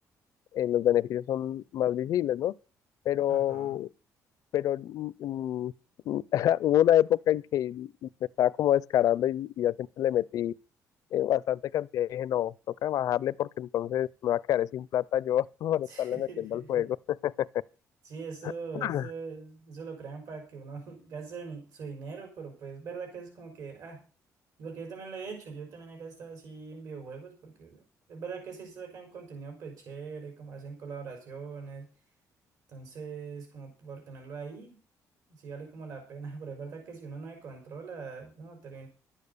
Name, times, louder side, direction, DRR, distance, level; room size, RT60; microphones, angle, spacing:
voice 1, 0.5-2.6 3.1-3.9 4.5-5.7 6.1-8.1 8.4-10.5 11.1-12.5 12.8-17.5 18.7-19.1, left 12 dB, 70° left, 0.5 m, -27 dB
voice 2, 3.3-3.8 15.7-16.9 18.0-24.0 24.6-27.8 28.1-31.9 32.7-34.8 35.3-38.9, right 5 dB, 70° right, 4.5 m, -42 dB
12.0 x 8.8 x 6.8 m
cardioid pair, 135°, 6 cm